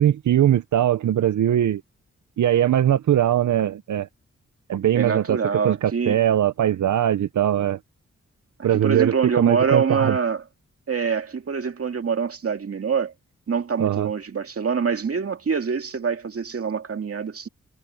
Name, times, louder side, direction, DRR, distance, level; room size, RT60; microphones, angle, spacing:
voice 1, 0.0-1.8 2.4-4.1 4.7-7.8 8.6-10.1 13.8-14.1, right 11 dB, 80° right, 0.7 m, -21 dB
voice 2, 4.9-6.2 8.8-10.4 10.9-13.1 13.5-17.5, right 6 dB, 50° right, 2.2 m, -25 dB
wide cardioid pair, 100°, 29 cm